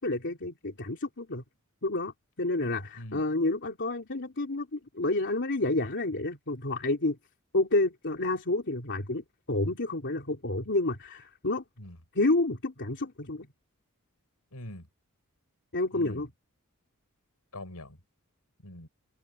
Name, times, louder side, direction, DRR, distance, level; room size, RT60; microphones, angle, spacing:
voice 1, 0.0-1.4 1.8-7.2 7.5-11.6 12.1-13.5 15.7-16.3, left 2 dB, 55° left, 3.1 m, -29 dB
voice 2, 14.5-14.9 15.9-16.3 17.5-18.0 18.6-18.9, left 1 dB, 80° left, 5.9 m, -43 dB
head